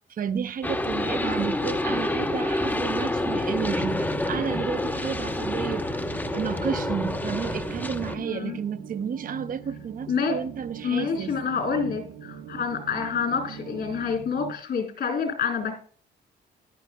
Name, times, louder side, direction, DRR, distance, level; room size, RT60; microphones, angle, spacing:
voice 1, 0.1-6.0 6.3-11.4, right 7 dB, 45° right, 0.7 m, -32 dB
sound 1, 0.6-8.2, left 1 dB, 10° left, 0.9 m, -28 dB
sound 2, 3.6-14.5, right 8 dB, 80° right, 1.0 m, -42 dB
voice 2, 8.2-8.6 10.1-10.4 10.8-15.8, left 6 dB, 50° left, 3.8 m, -28 dB
14.0 x 11.5 x 2.2 m
cardioid pair, 90°, 20 cm